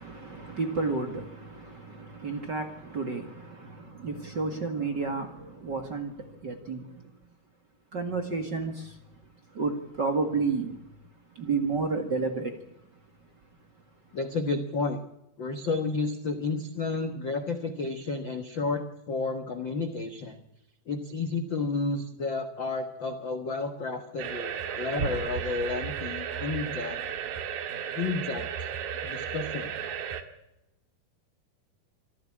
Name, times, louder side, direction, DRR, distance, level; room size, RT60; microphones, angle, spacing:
voice 1, 0.0-7.0 7.9-9.0 9.5-10.8 11.3-12.5, right 4 dB, 40° right, 1.7 m, -31 dB
voice 2, 14.1-15.0 15.4-20.4 20.9-27.0 27.9-28.7 29.0-29.7, left 3 dB, 70° left, 1.1 m, -31 dB
sound 1, 24.2-30.2, right 8 dB, 65° right, 3.2 m, -34 dB
26.0 x 15.0 x 8.7 m
omnidirectional pair, 4.6 m